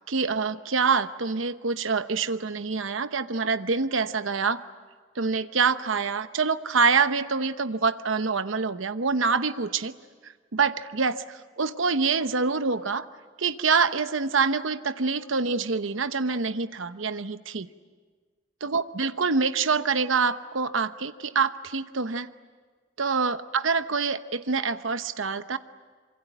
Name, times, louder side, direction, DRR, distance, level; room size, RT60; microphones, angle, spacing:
voice 1, 0.0-4.6 5.2-9.9 10.2-13.1 13.4-17.7 18.6-22.3 23.0-25.6, right 5 dB, 75° right, 11 dB, 0.9 m, -26 dB
26.5 x 24.0 x 9.2 m, 1.5 s
head